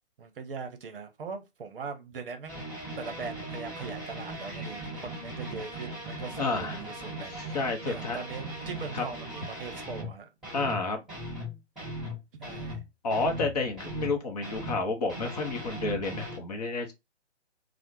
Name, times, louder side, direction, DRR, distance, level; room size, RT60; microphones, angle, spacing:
voice 1, 0.2-2.6 3.0-7.6 7.8-10.5 11.8-11.9 12.4-12.8, right 5 dB, 50° right, 0.7 m, -41 dB
sound 1, 2.5-10.2 10.4-10.8 11.1-14.2 14.4-16.4, right 1 dB, ahead, 1.7 m, -39 dB
voice 2, 6.4-6.8 7.5-8.2 8.9-9.0 10.5-11.0 13.0-16.9, left 3 dB, 35° left, 0.6 m, -30 dB
3.3 x 2.0 x 2.9 m
figure-of-eight pair, 140°, 35 cm